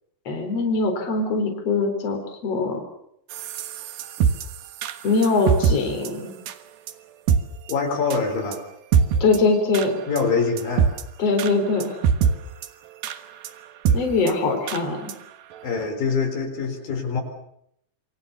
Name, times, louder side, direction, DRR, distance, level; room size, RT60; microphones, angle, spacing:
voice 1, 0.3-2.8 5.0-6.3 9.2-10.0 11.2-12.0 13.9-15.1, left 3 dB, 45° left, 4 dB, 5.1 m, -22 dB
sound 1, 3.3-5.8 6.1-6.2 6.5-6.6 6.9-7.0 7.3-7.4 7.7-7.8 8.1-8.2 8.5-8.6 8.9-9.4 9.7-9.9 10.2-10.3 10.6-11.0 11.4-11.5 11.8-12.3 12.6-12.7 13.0-13.2 13.4-13.5 13.9-14.0 14.3-14.4 14.7-14.8 15.1-15.2 15.6-15.7, right 7 dB, 85° right, 3.3 m, -21 dB
voice 2, 7.7-8.6 10.1-10.9 15.6-17.2, left 4 dB, 75° left, 4 dB, 5.8 m, -24 dB
27.5 x 24.5 x 7.1 m, 0.72 s
omnidirectional pair, 4.1 m